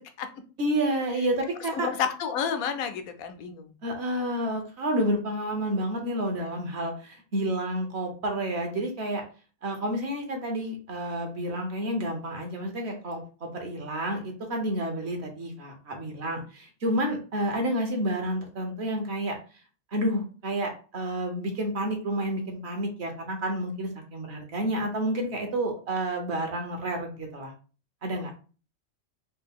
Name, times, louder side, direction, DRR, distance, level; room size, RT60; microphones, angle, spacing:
voice 1, 0.6-1.9 3.8-9.2 9.6-19.4 19.9-27.5 28.0-28.3, right 1 dB, 55° right, 3 dB, 1.0 m, -30 dB
voice 2, 1.7-3.7, left 7 dB, 80° left, 8 dB, 1.0 m, -30 dB
3.4 x 2.4 x 3.5 m, 0.36 s
omnidirectional pair, 1.5 m